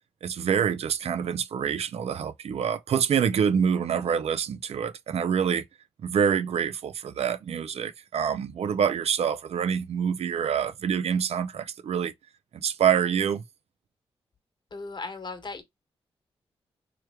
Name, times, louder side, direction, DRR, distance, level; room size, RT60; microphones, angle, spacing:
voice 1, 0.2-5.6 6.0-12.1 12.6-13.4, right 7 dB, 70° right, 0.5 m, -26 dB
voice 2, 14.7-15.6, left 3 dB, 45° left, 1.2 m, -36 dB
3.3 x 3.1 x 2.2 m
supercardioid pair, 50°, 11 cm